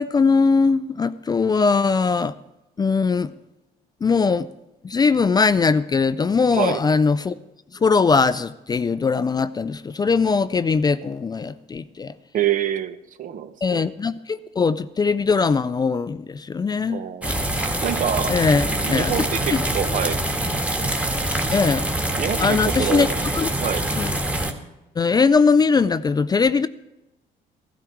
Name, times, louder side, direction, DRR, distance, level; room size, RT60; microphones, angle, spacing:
voice 1, 0.0-2.3 2.8-3.3 4.0-4.5 4.8-7.3 7.8-12.1 13.6-17.0 18.3-19.1 19.5-19.6 21.5-21.9 22.4-23.1 23.4-23.5 24.0-24.1 25.0-26.7, left 4 dB, 25° left, 0.4 m, -20 dB
voice 2, 6.5-6.8 12.3-13.9 16.9-17.4 17.8-18.4 18.8-20.2 22.2-23.1 23.6-23.9, right 10 dB, 50° right, 1.0 m, -26 dB
sound 1, 17.2-24.5, right 1 dB, 10° right, 1.7 m, -24 dB
16.0 x 12.5 x 4.6 m
cardioid pair, 110°, 17 cm